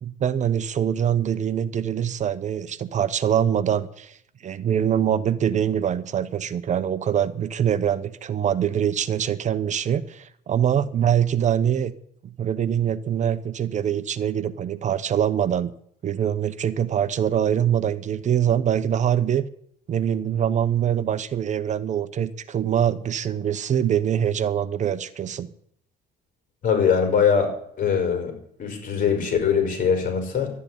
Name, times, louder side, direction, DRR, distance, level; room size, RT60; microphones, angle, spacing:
voice 1, 0.0-11.9 12.4-15.7 16.0-19.4 19.9-25.5, right 9 dB, 45° right, 14 dB, 0.9 m, -24 dB
voice 2, 26.6-27.5 27.8-28.3 28.6-30.5, left 7 dB, 50° left, 5 dB, 5.4 m, -21 dB
12.0 x 9.7 x 9.9 m, 0.68 s
cardioid pair, 110°, 17 cm